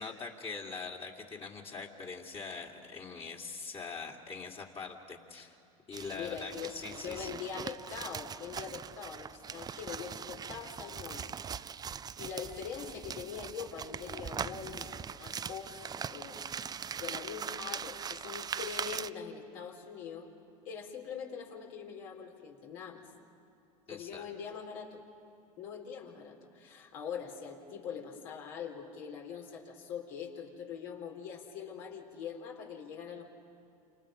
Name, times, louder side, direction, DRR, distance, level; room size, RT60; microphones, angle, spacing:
voice 1, 0.0-5.6 5.9-7.3 14.4-14.5 23.9-24.3, left 4 dB, 30° left, -1 dB, 2.6 m, -43 dB
sound 1, 5.9-19.1, right 7 dB, 20° right, 0.4 m, -41 dB
voice 2, 6.1-11.3 12.2-16.4 17.0-20.3 20.6-23.0 23.9-25.0 25.6-33.3, left 7 dB, 70° left, 0 dB, 3.8 m, -43 dB
28.5 x 27.0 x 5.1 m, 2.7 s
hypercardioid pair, 90°, 19 cm